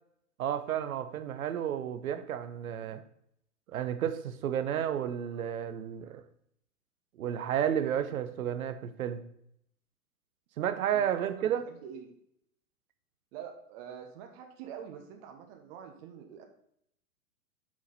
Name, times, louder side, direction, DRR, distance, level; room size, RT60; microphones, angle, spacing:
voice 1, 0.4-3.0 3.7-6.2 7.2-9.2 10.6-11.6, right 9 dB, 65° right, 10 dB, 1.0 m, -32 dB
voice 2, 10.9-12.1 13.3-16.5, right 8 dB, 40° right, 5 dB, 1.2 m, -46 dB
7.4 x 5.0 x 4.2 m, 0.71 s
hypercardioid pair, 115°, 46 cm